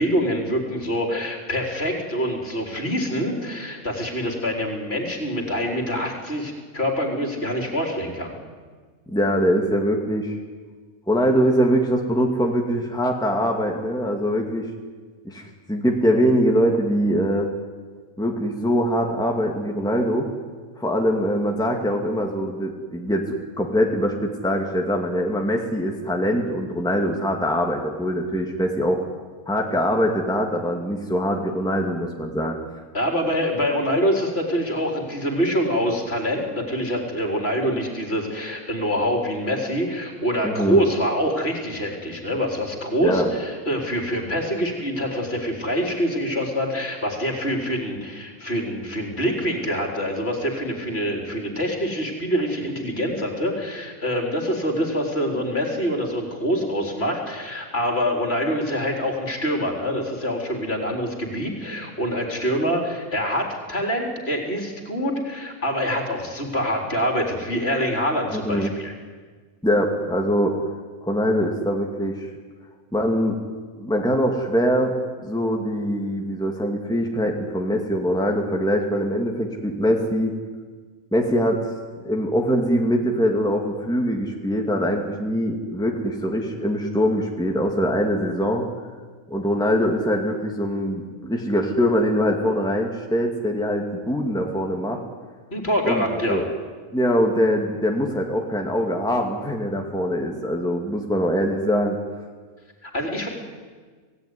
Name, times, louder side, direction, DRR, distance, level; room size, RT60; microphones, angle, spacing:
voice 1, 0.0-8.3 32.9-68.9 95.5-96.4 102.8-103.3, equal, 45° left, 2 dB, 4.2 m, -25 dB
voice 2, 9.1-10.4 11.1-14.7 15.2-17.5 18.2-20.3 20.8-29.0 29.5-32.6 40.4-40.8 43.0-43.3 68.3-68.7 69.6-70.5 71.0-72.3 72.9-73.4 73.8-75.0 75.2-80.3 81.1-81.6 82.0-88.6 89.3-95.0 95.8-96.5 96.9-102.0, equal, 5° left, 1 dB, 2.3 m, -23 dB
27.5 x 17.5 x 9.8 m, 1.5 s
omnidirectional pair, 1.5 m